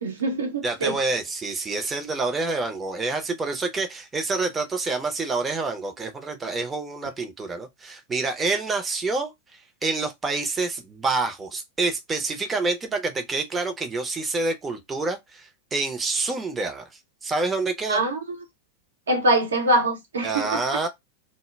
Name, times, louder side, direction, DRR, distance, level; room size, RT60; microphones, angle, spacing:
voice 1, 0.0-1.0 17.9-18.2 19.1-20.8, right 1 dB, 70° right, 0.8 m, -23 dB
voice 2, 0.6-16.8 17.2-18.1 20.2-20.9, right 3 dB, 15° right, 0.6 m, -27 dB
2.2 x 2.1 x 3.0 m
figure-of-eight pair, 90°, 0 cm